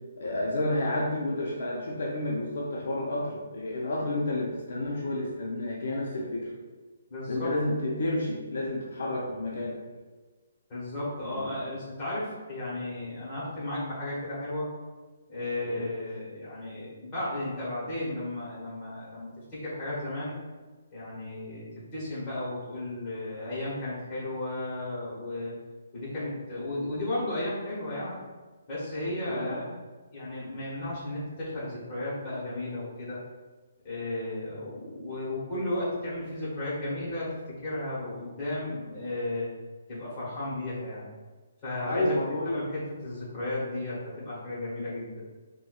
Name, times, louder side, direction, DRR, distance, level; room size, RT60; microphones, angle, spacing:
voice 1, 0.2-6.5 7.3-9.8 11.3-11.5 15.6-15.9 29.3-29.7 41.9-42.6, left 1 dB, 55° left, -4 dB, 0.5 m, -30 dB
voice 2, 7.1-7.5 10.7-14.7 15.3-20.4 20.9-25.5 25.9-28.2 28.7-29.8 30.1-33.2 33.8-39.5 39.9-41.1 41.6-42.2 42.4-45.2, left 1 dB, 15° left, -10 dB, 1.0 m, -34 dB
4.1 x 2.2 x 2.3 m, 1.3 s
hypercardioid pair, 180°, 0 cm